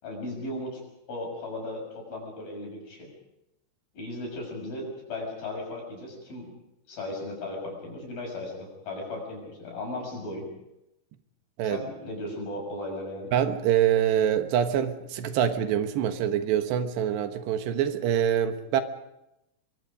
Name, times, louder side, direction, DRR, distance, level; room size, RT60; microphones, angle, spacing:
voice 1, 0.0-0.8 1.1-3.1 3.9-6.5 6.9-10.5 11.6-13.3, left 2 dB, 55° left, 1 dB, 8.5 m, -36 dB
voice 2, 13.3-18.8, right 9 dB, 85° right, 8 dB, 3.5 m, -25 dB
24.5 x 24.0 x 5.2 m, 0.87 s
omnidirectional pair, 4.8 m